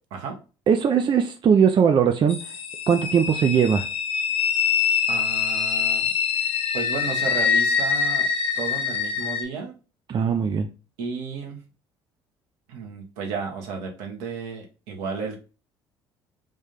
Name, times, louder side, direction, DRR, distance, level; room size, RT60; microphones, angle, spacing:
voice 1, 0.7-2.5 2.9-3.9 10.1-10.7, right 7 dB, 40° right, 0.5 m, -20 dB
sound 1, 2.3-9.4, left 6 dB, 55° left, 0.7 m, -24 dB
voice 2, 5.1-6.1 6.7-8.3 8.6-9.7 11.0-11.6 12.7-15.4, right 5 dB, 75° right, 1.1 m, -33 dB
3.5 x 2.6 x 3.6 m
hypercardioid pair, 60°, 12 cm